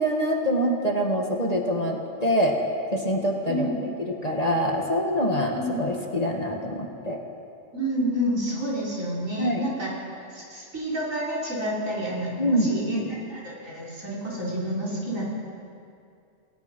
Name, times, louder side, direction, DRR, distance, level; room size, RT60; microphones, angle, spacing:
voice 1, 0.0-2.6 2.9-3.7 4.1-7.2 9.4-9.6 12.4-13.1, equal, 30° left, 0 dB, 2.0 m, -25 dB
voice 2, 5.5-5.8 7.7-9.9 10.3-15.3, equal, 70° right, -5 dB, 5.5 m, -29 dB
28.5 x 17.0 x 5.6 m, 2.5 s
omnidirectional pair, 1.4 m